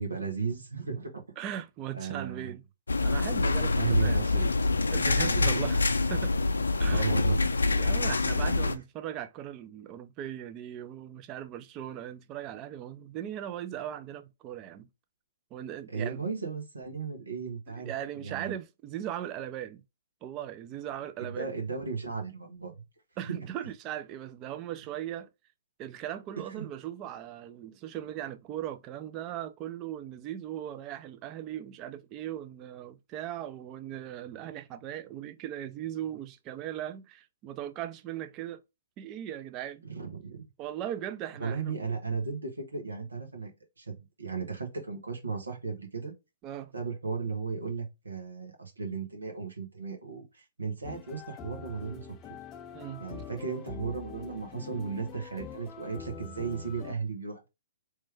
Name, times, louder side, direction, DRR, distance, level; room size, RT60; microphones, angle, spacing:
voice 1, 0.0-1.2 1.9-2.5 3.7-4.7 5.1-5.6 6.9-7.4 15.9-17.9 18.2-18.6 21.2-22.7 23.3-23.4 26.5-26.6 39.8-40.5 41.4-43.5 43.8-43.9 44.2-46.1 46.7-52.1 53.0-57.5, right 5 dB, 90° right, 1.7 m, -35 dB
voice 2, 1.4-2.6 3.0-4.2 4.9-5.8 6.1-6.3 6.8-7.1 7.7-14.9 15.5-16.2 17.8-19.8 20.2-21.5 23.2-25.3 25.8-38.6 39.0-39.8 40.6-41.7 46.4-46.7 52.7-53.1, right 11 dB, 30° right, 0.5 m, -38 dB
sound 1, 2.9-8.8, left 3 dB, 85° left, 0.5 m, -26 dB
sound 2, 50.8-56.9, left 7 dB, 25° left, 0.4 m, -45 dB
3.3 x 3.2 x 3.3 m
hypercardioid pair, 125°, 0 cm